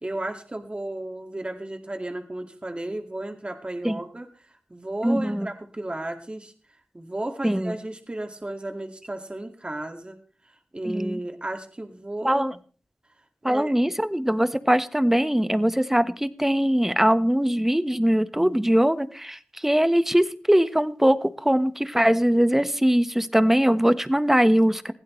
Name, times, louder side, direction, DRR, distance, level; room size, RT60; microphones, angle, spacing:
voice 1, 0.0-4.3 4.7-6.5 6.9-10.2 10.7-12.4 13.4-13.7, right 1 dB, 30° right, 5 dB, 2.1 m, -33 dB
voice 2, 5.0-5.5 7.4-7.7 10.8-11.2 12.2-12.5 13.4-24.9, equal, 10° right, 12 dB, 1.3 m, -21 dB
21.0 x 16.0 x 3.2 m, 0.40 s
cardioid pair, 45°, 4 cm